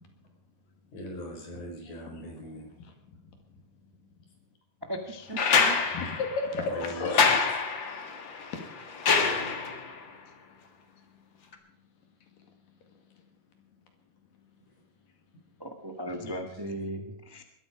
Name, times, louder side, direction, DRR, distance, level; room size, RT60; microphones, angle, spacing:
voice 1, 0.9-2.7 6.7-7.4, left 1 dB, 60° left, 2 dB, 5.7 m, -40 dB
voice 2, 2.1-3.0 5.9-7.4 7.9-8.2 8.5-8.6 10.9-11.2, left 3 dB, 80° left, 5 dB, 3.8 m, -35 dB
voice 3, 4.8-5.8 15.6-17.4, right 1 dB, 20° right, 5 dB, 0.5 m, -37 dB
sound 1, 5.4-10.0 11.5-11.6, left 5 dB, 45° left, 1.9 m, -26 dB
21.0 x 13.5 x 5.1 m, 0.70 s
omnidirectional pair, 3.9 m